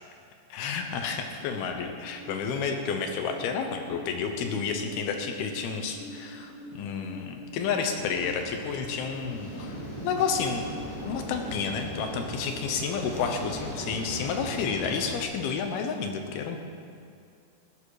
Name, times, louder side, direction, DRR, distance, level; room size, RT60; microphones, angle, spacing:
voice 1, 0.5-9.8 10.0-10.6 11.1-16.6, left 6 dB, 75° left, 4 dB, 2.4 m, -30 dB
sound 1, 0.7-15.6, left 1 dB, 20° right, 4.9 m, -45 dB
sound 2, 7.8-15.2, equal, 40° left, 3.3 m, -39 dB
sound 3, 8.2-13.5, right 3 dB, 75° right, 4.3 m, -50 dB
17.0 x 12.0 x 4.9 m, 2.3 s
omnidirectional pair, 5.5 m